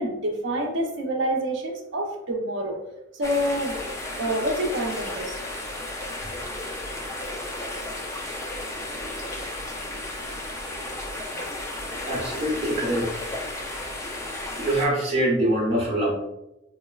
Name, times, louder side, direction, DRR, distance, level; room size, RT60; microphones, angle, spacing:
voice 1, 0.0-2.8 3.1-3.8 4.1-5.4, right 1 dB, 70° right, 1 dB, 0.5 m, -27 dB
sound 1, 3.2-14.9, left 1 dB, 15° left, 0.3 m, -33 dB
voice 2, 11.9-13.1 14.6-16.1, right 1 dB, 35° right, -4 dB, 0.9 m, -24 dB
3.9 x 2.0 x 2.2 m, 0.89 s
head